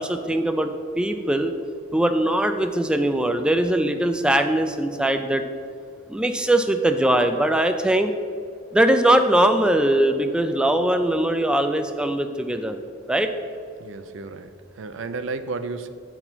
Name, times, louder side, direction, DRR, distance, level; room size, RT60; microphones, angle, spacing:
voice 1, 0.0-1.5 1.9-5.5 6.1-8.1 8.7-12.8 13.1-13.3, right 1 dB, 5° right, 7 dB, 0.3 m, -21 dB
voice 2, 13.8-15.9, right 3 dB, 70° right, 11 dB, 0.5 m, -33 dB
7.8 x 4.7 x 5.6 m, 2.3 s
head